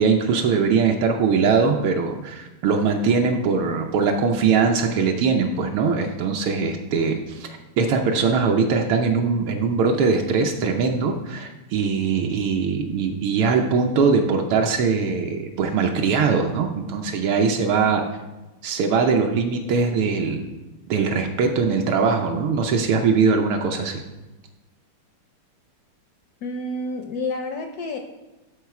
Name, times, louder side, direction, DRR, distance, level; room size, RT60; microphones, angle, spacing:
voice 1, 0.0-7.5 7.8-18.1 18.6-20.5 20.9-24.0, right 5 dB, 80° right, 3 dB, 1.5 m, -21 dB
voice 2, 26.4-28.0, left 2 dB, 75° left, 4 dB, 0.9 m, -29 dB
11.5 x 4.0 x 4.7 m, 1.1 s
omnidirectional pair, 2.4 m